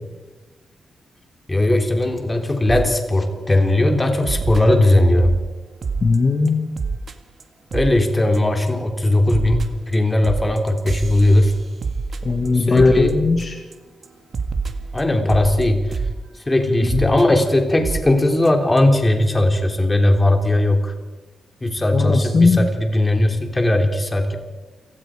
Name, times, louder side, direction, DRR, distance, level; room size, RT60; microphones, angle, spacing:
voice 1, 1.5-5.3 7.7-11.5 12.5-13.2 14.9-16.0 16.4-20.9 21.6-24.3, left 1 dB, 15° left, 4 dB, 3.4 m, -18 dB
sound 1, 2.7-2.9 3.3-3.5 4.2-5.4 5.8-6.2 6.5-6.6 6.8-7.1 7.4-7.5 7.7-8.1 8.3-8.7 9.0-13.7 14.0-14.1 14.3-16.2 16.9-17.2 17.8-18.1 18.4-18.5 18.8-18.9, right 4 dB, 50° right, 2.0 m, -27 dB
voice 2, 6.0-6.7 12.2-13.5 16.9-17.1 21.9-22.6, left 3 dB, 40° left, 4 dB, 2.0 m, -17 dB
29.0 x 18.5 x 5.1 m, 1.2 s
wide cardioid pair, 120°, 0 cm